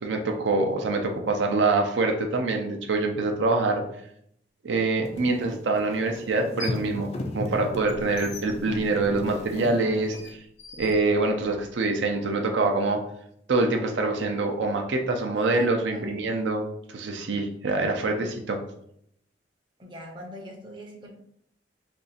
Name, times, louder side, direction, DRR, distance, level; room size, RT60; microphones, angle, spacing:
voice 1, 0.0-3.8 4.6-10.2 10.8-13.0 13.5-18.6, right 3 dB, 80° right, 3 dB, 0.5 m, -25 dB
sound 1, 5.0-10.3, left 2 dB, 35° left, 0.3 m, -36 dB
sound 2, 5.1-5.2 6.3-6.9 7.3-11.7, left 3 dB, 75° left, 0.6 m, -43 dB
voice 2, 15.4-16.1 19.8-21.1, equal, 25° right, 0 dB, 0.5 m, -42 dB
2.6 x 2.4 x 3.9 m, 0.70 s
head